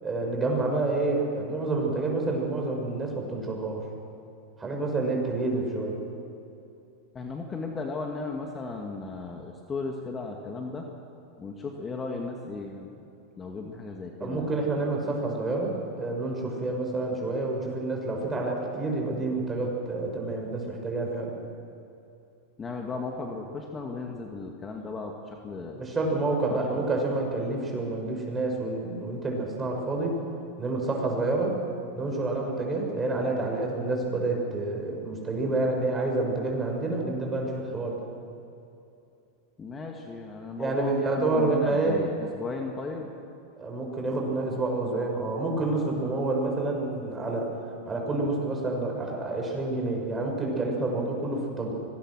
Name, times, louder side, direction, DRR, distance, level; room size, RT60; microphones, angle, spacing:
voice 1, 0.0-3.8 4.6-6.0 14.2-21.3 25.7-30.2 30.6-31.6 31.9-38.0 40.6-42.0 43.6-47.5 47.9-51.7, right 2 dB, 20° right, 0 dB, 6.6 m, -28 dB
voice 2, 7.1-10.9 11.4-13.0 13.4-14.5 22.6-25.8 26.5-26.9 39.6-43.1, left 3 dB, 25° left, 2 dB, 2.3 m, -36 dB
25.0 x 20.0 x 6.5 m, 2.7 s
hypercardioid pair, 105°, 0 cm